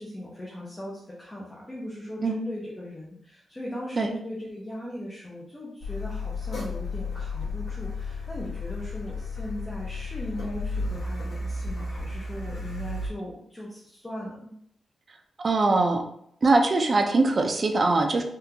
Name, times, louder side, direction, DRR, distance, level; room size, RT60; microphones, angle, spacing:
voice 1, 0.0-14.5, equal, 15° left, -5 dB, 0.6 m, -38 dB
Car, 5.8-13.1, left 3 dB, 70° left, 1.5 m, -33 dB
voice 2, 15.4-16.0 16.4-18.2, right 3 dB, 30° right, 4 dB, 0.4 m, -22 dB
3.6 x 2.4 x 2.8 m, 0.69 s
wide cardioid pair, 165°, 0 cm